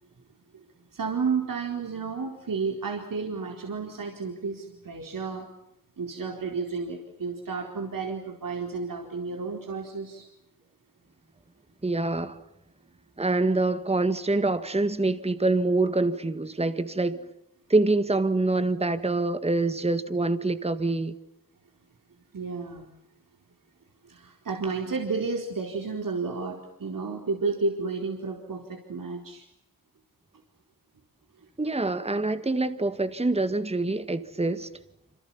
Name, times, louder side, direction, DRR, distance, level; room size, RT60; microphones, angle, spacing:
voice 1, 0.9-5.5 6.0-10.3 22.3-22.9 24.0-29.4, right 4 dB, 65° right, 4.4 m, -32 dB
voice 2, 11.8-12.4 13.2-17.2 17.7-21.2 31.6-34.7, right 2 dB, 15° right, 1.8 m, -25 dB
28.0 x 27.0 x 7.3 m
wide cardioid pair, 80°, 35 cm